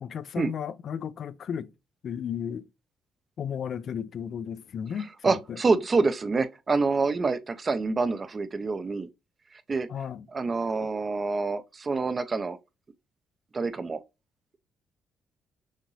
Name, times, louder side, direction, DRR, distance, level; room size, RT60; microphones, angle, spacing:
voice 1, 0.0-1.7 2.0-2.6 3.4-5.6 9.9-10.3, left 8 dB, 60° left, 0.4 m, -34 dB
voice 2, 5.2-9.1 9.7-9.9 10.3-12.6 13.5-14.0, right 4 dB, 35° right, 0.6 m, -26 dB
6.4 x 2.5 x 3.1 m
cardioid pair, 90°, 0 cm